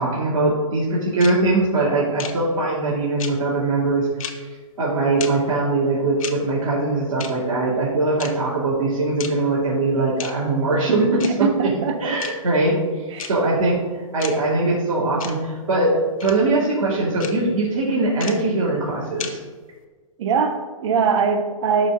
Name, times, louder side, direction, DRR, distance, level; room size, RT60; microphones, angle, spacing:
voice 1, 0.0-4.5 4.8-11.5 12.0-13.8 14.1-19.4, right 2 dB, 70° right, -8 dB, 2.6 m, -21 dB
sound 1, 1.2-1.3 2.2-2.3 3.2-3.3 4.2-4.3 5.2-5.3 6.2-6.3 7.2-7.3 8.2-8.3 9.2-9.3 10.2-10.3 11.2-11.3 12.2-12.3 13.2-13.3 14.2-14.3 15.2-15.3 16.2-16.3 17.2-17.3 18.2-18.3 19.2-19.3, left 7 dB, 80° left, 1.0 m, -31 dB
voice 2, 11.2-12.2 13.1-13.3 20.2-21.9, right 5 dB, 55° right, 7 dB, 1.0 m, -22 dB
11.5 x 4.3 x 3.8 m, 1.4 s
hypercardioid pair, 150°, 18 cm